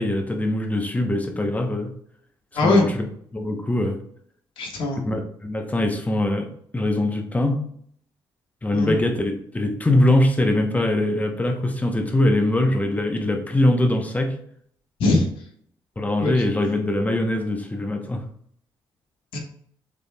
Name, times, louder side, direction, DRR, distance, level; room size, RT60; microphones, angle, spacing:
voice 1, 0.0-1.9 2.6-3.0 3.3-4.0 5.0-6.5 6.7-7.6 8.6-14.4 16.0-18.2, left 1 dB, 15° left, 4 dB, 0.9 m, -22 dB
voice 2, 4.6-5.0 8.7-8.9 15.0-15.3 16.2-16.4 19.3-19.4, left 2 dB, 75° left, 0 dB, 1.4 m, -20 dB
6.8 x 3.4 x 2.3 m, 0.65 s
cardioid pair, 85°, 9 cm